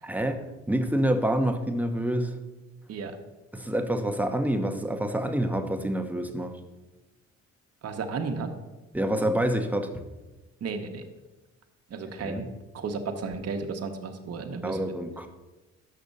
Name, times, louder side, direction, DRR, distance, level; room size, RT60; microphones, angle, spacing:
voice 1, 0.0-0.4 0.7-2.3 3.5-6.5 8.9-9.9 12.2-12.5 14.6-15.3, right 1 dB, 5° right, 5 dB, 0.8 m, -27 dB
voice 2, 7.8-8.5 10.6-11.0 11.9-14.9, right 4 dB, 55° right, 5 dB, 1.0 m, -34 dB
6.7 x 5.9 x 5.3 m, 1.1 s
cardioid pair, 90°, 30 cm